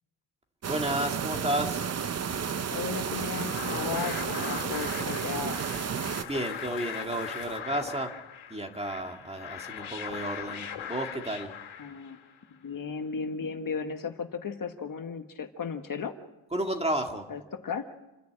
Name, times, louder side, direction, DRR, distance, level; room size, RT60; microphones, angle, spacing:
sound 1, 0.6-6.2, right 7 dB, 35° right, 0.6 m, -32 dB
voice 1, 0.7-1.8 6.2-8.1 8.5-11.5 16.5-17.3, right 1 dB, 15° right, 4 dB, 1.9 m, -32 dB
sound 2, 1.3-7.6, left 8 dB, 65° left, 1.7 m, -50 dB
voice 2, 2.7-5.6 11.8-12.2 12.6-16.1 17.3-17.9, left 5 dB, 45° left, 6 dB, 1.5 m, -35 dB
sound 3, 3.0-12.4, left 8 dB, 90° left, 2.6 m, -40 dB
28.5 x 10.5 x 8.9 m, 1.0 s
cardioid pair, 130°, 47 cm